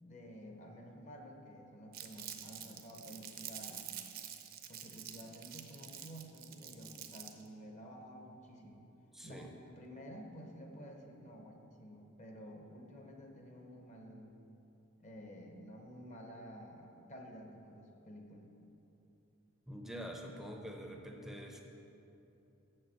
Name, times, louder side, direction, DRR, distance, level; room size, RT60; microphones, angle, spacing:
voice 1, 0.0-3.9 4.7-8.9 9.2-14.3 15.0-18.5, equal, 35° left, 2 dB, 1.0 m, -51 dB
Crumpling crinkling, 1.9-7.5, right 10 dB, 45° right, 0.6 m, -47 dB
voice 2, 9.1-9.5 19.7-21.6, equal, ahead, 2 dB, 0.6 m, -46 dB
7.3 x 6.6 x 6.9 m, 2.8 s
head